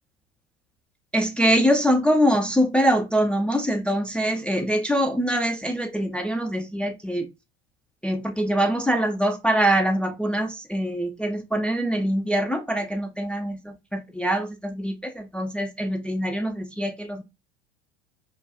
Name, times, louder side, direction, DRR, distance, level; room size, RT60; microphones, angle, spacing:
voice 1, 1.1-7.3 8.0-17.2, equal, 5° left, 0.4 m, -24 dB
5.4 x 2.3 x 2.3 m
figure-of-eight pair, 75°, 34 cm